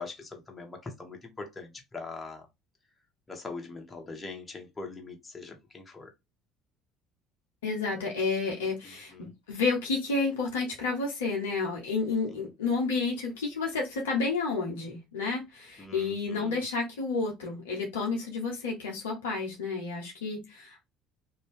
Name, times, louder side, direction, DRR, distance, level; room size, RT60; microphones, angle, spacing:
voice 1, 0.0-2.5 3.3-6.1 8.8-9.3 12.3-12.4 15.8-16.6, left 3 dB, 20° left, 1.1 m, -42 dB
voice 2, 7.6-20.8, left 4 dB, 75° left, 0.9 m, -31 dB
2.6 x 2.2 x 3.5 m
figure-of-eight pair, 55°, 0 cm